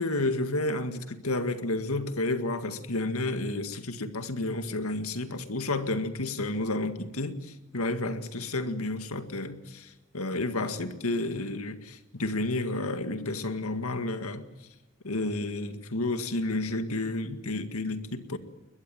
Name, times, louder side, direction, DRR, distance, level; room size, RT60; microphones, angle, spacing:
voice 1, 0.0-14.4 15.0-18.4, left 2 dB, 90° left, 2.0 m, -31 dB
21.5 x 21.5 x 9.1 m
head